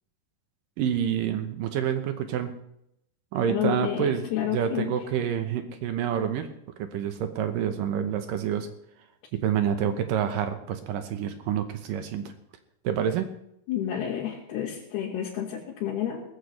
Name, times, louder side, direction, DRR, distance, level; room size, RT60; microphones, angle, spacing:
voice 1, 0.8-2.5 3.3-6.5 6.8-8.7 9.3-12.3 12.8-13.3, right 9 dB, 75° right, 8 dB, 2.4 m, -28 dB
voice 2, 3.5-4.9 13.7-16.2, left 10 dB, 90° left, -4 dB, 3.7 m, -30 dB
18.5 x 14.5 x 3.3 m, 0.77 s
omnidirectional pair, 4.5 m